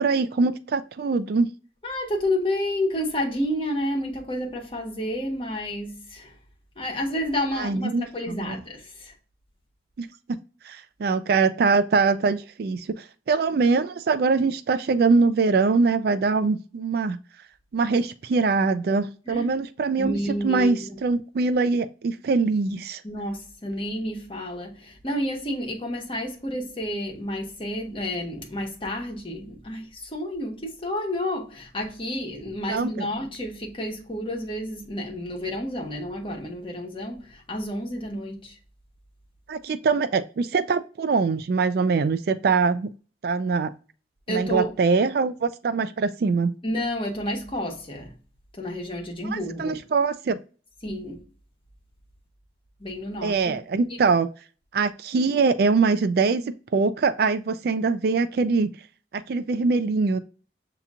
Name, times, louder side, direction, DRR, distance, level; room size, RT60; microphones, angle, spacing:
voice 1, 0.0-1.5 7.6-8.6 10.0-10.4 10.6-17.2 17.7-23.0 32.7-33.1 39.5-42.9 43.2-43.7 44.3-46.5 49.3-50.4 53.2-54.3 54.7-58.7 59.1-60.2, right 4 dB, 55° right, 0.3 m, -23 dB
voice 2, 1.8-6.3 6.8-9.1 19.3-19.5 20.0-21.0 23.0-38.6 44.3-44.7 46.6-48.1 48.5-49.8 50.8-51.2 52.8-53.6, left 1 dB, 30° left, 1.2 m, -30 dB
6.9 x 2.9 x 2.4 m
head